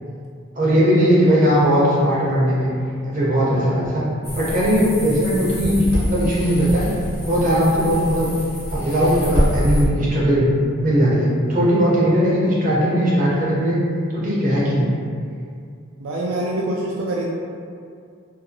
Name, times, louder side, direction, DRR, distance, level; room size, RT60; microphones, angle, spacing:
voice 1, 0.5-2.7 3.0-4.1 4.3-6.9 7.2-8.3 8.7-10.5 10.8-13.8 14.1-14.9, equal, 40° right, -7 dB, 0.7 m, -18 dB
sound 1, 4.2-9.8, equal, 85° left, 1.1 m, -26 dB
voice 2, 16.0-17.3, right 1 dB, 75° right, -3 dB, 0.3 m, -25 dB
2.7 x 2.5 x 2.7 m, 2.3 s
head